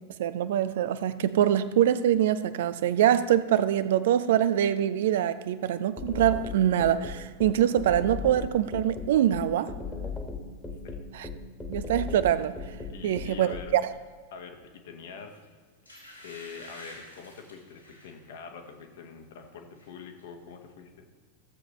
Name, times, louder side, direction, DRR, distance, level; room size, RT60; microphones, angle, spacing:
voice 1, 0.2-9.7 11.1-11.3 11.7-12.6 13.0-13.8, right 11 dB, 55° right, 14 dB, 0.4 m, -24 dB
sound 1, 6.0-13.6, left 4 dB, 10° left, 1.5 m, -36 dB
voice 2, 12.9-13.7 14.3-15.6 16.2-21.1, left 6 dB, 55° left, 4 dB, 1.2 m, -44 dB
sound 2, 15.2-15.3 15.9-18.2 18.6-18.9 19.2-19.9 20.2-20.3, left 1 dB, 90° left, 2.8 m, -49 dB
15.5 x 7.4 x 3.1 m, 1.5 s
figure-of-eight pair, 90°, 0 cm